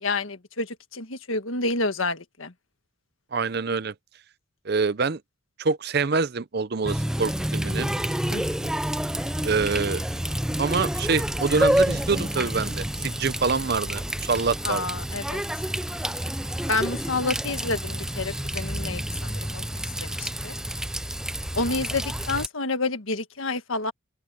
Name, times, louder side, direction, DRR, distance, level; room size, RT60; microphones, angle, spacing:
voice 1, 0.0-2.5 8.3-8.7 14.6-15.4 16.7-19.6 20.0-20.5 21.5-23.9, left 3 dB, 75° left, 1.6 m, -29 dB
voice 2, 3.3-3.9 4.6-5.2 5.6-7.9 9.4-10.0 10.6-14.9, right 4 dB, 50° right, 0.6 m, -26 dB
Water tap faucet, 6.9-22.5, equal, 5° right, 0.4 m, -28 dB
open air
head